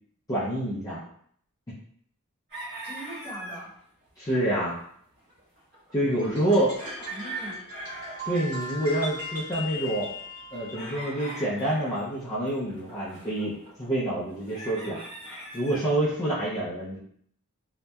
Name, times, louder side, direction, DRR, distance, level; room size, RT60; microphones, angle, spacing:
voice 1, 0.3-1.0 4.2-4.8 5.9-6.7 8.3-10.1 10.5-15.0 15.5-17.0, right 1 dB, 15° left, -10 dB, 0.4 m, -27 dB
sound 1, 2.5-3.7 4.1-4.2 4.4-4.5 4.7-4.8 5.2-8.9 9.1-16.0, right 1 dB, 45° right, 1.1 m, -41 dB
voice 2, 2.8-3.7 6.1-7.6, right 1 dB, 5° right, -10 dB, 0.9 m, -41 dB
sound 2, 6.2-10.9, left 2 dB, 80° right, 1.3 m, -39 dB
2.7 x 2.1 x 2.2 m, 0.64 s
head